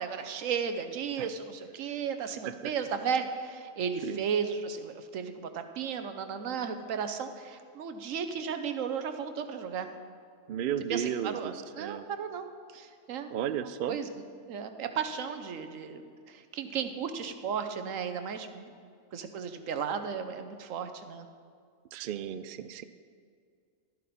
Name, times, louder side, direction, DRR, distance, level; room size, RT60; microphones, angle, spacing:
voice 1, 0.0-9.9 10.9-12.5 12.7-13.3 13.6-14.1 14.5-16.0 16.3-18.7 19.1-21.3, right 6 dB, 85° right, 8 dB, 1.2 m, -34 dB
voice 2, 10.5-12.0 13.3-14.0 21.9-22.8, right 9 dB, 60° right, 12 dB, 0.6 m, -34 dB
12.0 x 11.0 x 4.2 m, 2.2 s
omnidirectional pair, 1.3 m